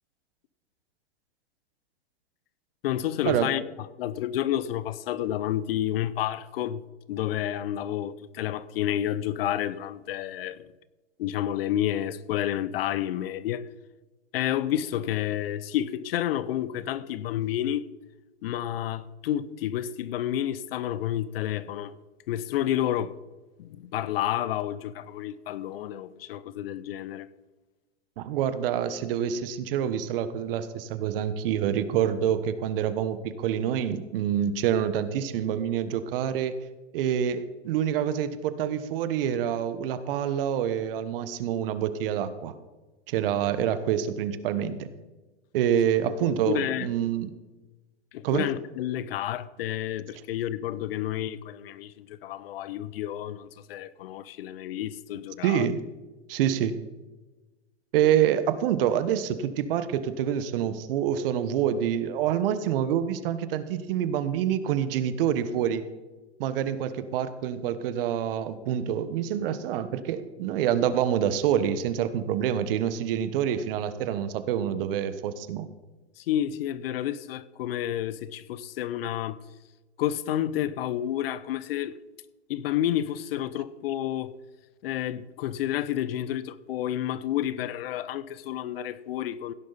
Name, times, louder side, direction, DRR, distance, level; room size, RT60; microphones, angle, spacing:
voice 1, 2.8-3.6 4.0-6.8 7.1-10.6 11.2-13.6 14.3-17.8 18.4-21.9 22.3-23.1 23.6-27.3 46.2-46.9 48.1-55.7 76.2-79.4 80.0-82.0 82.5-84.3 84.8-89.5, left 11 dB, 55° left, 0.8 m, -30 dB
voice 2, 28.2-36.5 36.9-42.5 43.1-44.9 45.5-47.3 48.2-48.5 55.4-55.8 56.3-56.8 57.9-65.8 66.4-75.7, right 9 dB, 55° right, 1.3 m, -27 dB
16.0 x 10.5 x 4.1 m
hypercardioid pair, 125°, 34 cm